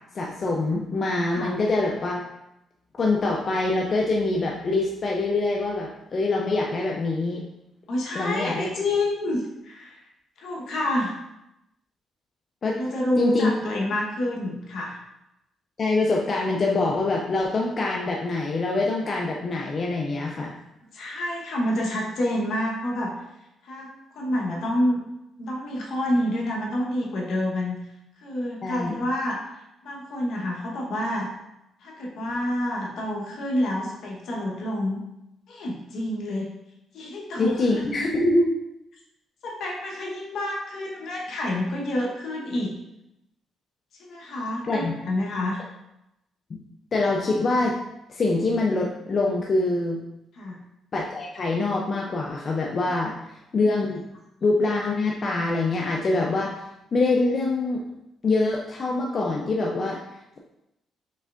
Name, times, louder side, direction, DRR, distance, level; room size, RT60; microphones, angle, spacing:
voice 1, 0.1-2.2 3.0-7.4 8.1-8.7 12.6-12.8 13.2-13.5 15.8-20.5 28.6-28.9 37.4-38.5 44.6-44.9 46.9-47.8 48.1-50.0 50.9-53.1 53.5-54.0 54.4-56.5 56.9-57.8 58.2-60.0, left 2 dB, 45° left, -1 dB, 0.5 m, -24 dB
voice 2, 7.9-10.0 10.4-11.1 12.8-15.0 20.9-23.1 23.6-25.0 25.4-27.7 28.2-29.4 29.8-31.3 31.8-35.0 35.5-36.5 36.9-37.7 39.4-42.7 44.0-45.6 50.3-50.6, left 1 dB, 70° left, -2 dB, 1.1 m, -28 dB
5.3 x 3.3 x 2.5 m, 0.88 s
cardioid pair, 90°, 0 cm